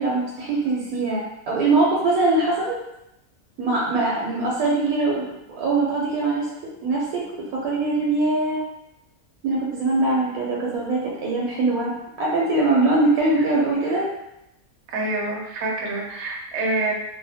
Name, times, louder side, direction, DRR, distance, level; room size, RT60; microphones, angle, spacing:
voice 1, 0.0-2.8 3.6-7.2 7.5-8.6 9.4-11.9 12.2-14.1, right 2 dB, 80° right, -4 dB, 1.0 m, -22 dB
voice 2, 14.9-16.9, right 2 dB, 65° right, -1 dB, 0.8 m, -26 dB
2.7 x 2.1 x 2.6 m, 0.86 s
omnidirectional pair, 1.5 m